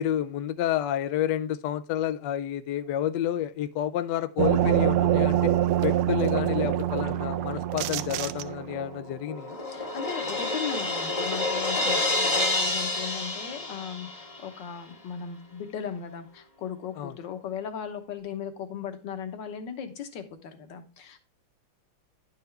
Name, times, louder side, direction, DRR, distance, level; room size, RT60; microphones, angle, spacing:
voice 1, 0.0-5.5 5.8-9.6 17.0-17.1, left 11 dB, 80° left, 12 dB, 0.9 m, -29 dB
sound 1, 4.4-8.9, right 12 dB, 80° right, 1.4 m, -25 dB
Crash cymbal, 8.7-14.4, left 2 dB, 25° left, 0.8 m, -29 dB
voice 2, 9.7-21.2, left 7 dB, 60° left, 8 dB, 1.6 m, -37 dB
10.5 x 5.8 x 3.2 m, 0.34 s
omnidirectional pair, 2.4 m